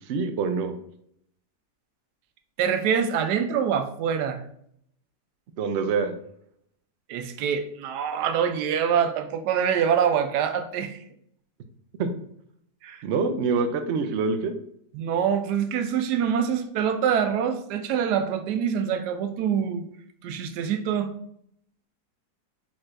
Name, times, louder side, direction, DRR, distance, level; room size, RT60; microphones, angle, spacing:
voice 1, 0.1-0.7 5.6-6.1 12.0-12.1 13.0-14.5, right 4 dB, 70° right, 7 dB, 0.6 m, -25 dB
voice 2, 2.6-4.4 7.1-11.0 12.8-13.0 14.9-19.8 20.2-21.1, right 8 dB, 90° right, 7 dB, 1.2 m, -25 dB
4.4 x 4.2 x 2.5 m, 0.68 s
omnidirectional pair, 1.7 m